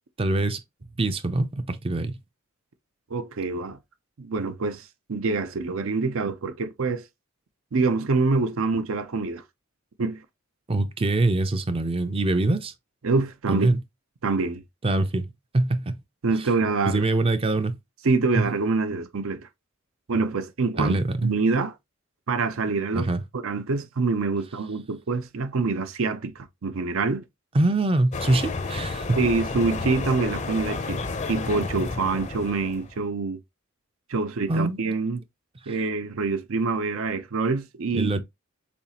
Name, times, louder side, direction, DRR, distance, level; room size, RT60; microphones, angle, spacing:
voice 1, 0.2-0.6 1.0-2.2 10.7-12.7 13.5-13.8 14.8-15.3 15.5-16.0 16.8-17.8 18.4-18.5 20.8-21.3 22.9-23.2 27.5-29.2 34.5-34.8 35.7-35.8 37.9-38.2, right 2 dB, 25° right, 0.5 m, -24 dB
voice 2, 3.1-3.8 4.2-7.0 7.7-9.4 10.0-10.2 13.0-13.7 14.2-14.6 16.2-17.1 18.0-19.4 20.1-21.7 22.3-23.1 23.3-27.2 29.2-33.4 34.1-35.2 35.7-38.1, right 4 dB, 75° right, 0.6 m, -26 dB
sound 1, 28.1-33.0, left 3 dB, 35° left, 0.6 m, -31 dB
7.0 x 2.4 x 2.8 m
head